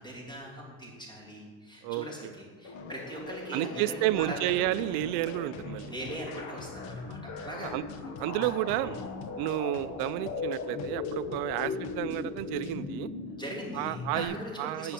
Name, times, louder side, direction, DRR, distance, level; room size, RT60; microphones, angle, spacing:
voice 1, 0.0-4.6 5.8-7.7 8.0-9.1 11.6-11.8 13.4-14.9, equal, 10° left, -3 dB, 3.1 m, -41 dB
sound 1, 2.6-14.3, left 4 dB, 50° left, 1.2 m, -39 dB
voice 2, 3.5-5.9 7.4-7.8 8.2-9.0 9.4-13.1 13.8-14.9, right 16 dB, 75° right, 14 dB, 0.5 m, -31 dB
sound 2, 4.5-12.8, left 6 dB, 70° left, 1.0 m, -50 dB
8.3 x 6.8 x 7.5 m, 1.5 s
cardioid pair, 120°, 38 cm